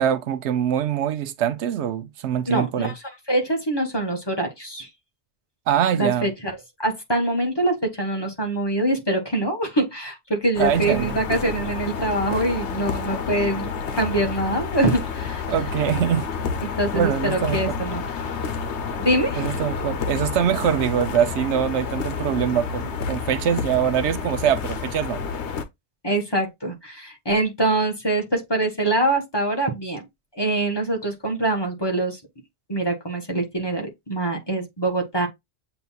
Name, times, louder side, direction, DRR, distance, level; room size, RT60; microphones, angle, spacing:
voice 1, 0.0-2.9 5.7-6.3 10.6-11.1 15.5-16.3 16.9-17.6 19.4-25.2, right 9 dB, 90° right, 0.9 m, -23 dB
voice 2, 2.5-2.9 3.3-4.9 6.0-6.5 6.8-15.4 16.6-18.0 19.0-19.5 26.0-30.0 30.3-32.2 32.7-35.3, right 2 dB, 25° left, 1.3 m, -24 dB
sound 1, 10.5-25.6, left 6 dB, 80° left, 1.0 m, -29 dB
7.8 x 2.9 x 2.3 m
omnidirectional pair, 1.1 m